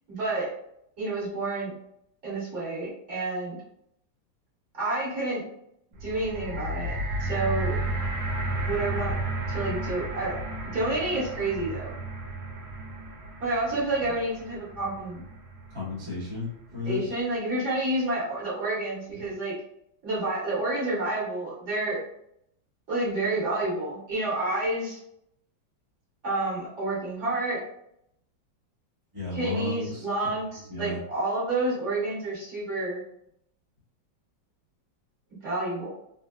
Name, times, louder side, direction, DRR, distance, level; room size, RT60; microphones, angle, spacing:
voice 1, 0.1-0.5 1.0-1.7 2.2-3.6 4.8-5.4 6.0-7.8 8.6-9.1 9.5-10.4 10.7-12.0 13.4-15.2 16.8-19.5 20.0-22.0 22.9-25.0 26.2-27.6 29.3-33.0 35.3-35.9, right 2 dB, 40° right, -9 dB, 1.9 m, -29 dB
sound 1, 5.9-16.2 16.9-17.0, right 2 dB, 70° right, 1.3 m, -33 dB
voice 2, 15.7-17.1 29.1-30.0 30.7-31.0, left 2 dB, 20° right, -9 dB, 0.8 m, -33 dB
4.1 x 2.3 x 2.3 m, 0.73 s
omnidirectional pair, 2.1 m